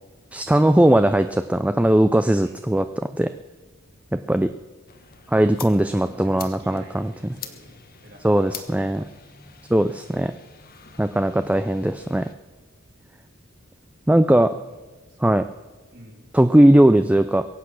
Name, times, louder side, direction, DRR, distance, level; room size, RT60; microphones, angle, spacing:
voice 1, 0.3-3.3 4.1-4.5 5.3-7.1 8.2-9.0 9.7-10.3 11.0-12.3 14.1-14.5 15.2-15.5 16.3-17.4, right 1 dB, 5° right, 10 dB, 0.4 m, -18 dB
voice 2, 2.4-2.8 6.0-9.1 14.5-14.8 15.1-15.2 15.9-16.3, right 1 dB, 55° right, 1 dB, 3.2 m, -47 dB
sound 1, 4.9-12.3, left 8 dB, 45° left, 1.1 m, -44 dB
22.5 x 8.2 x 6.2 m, 1.2 s
head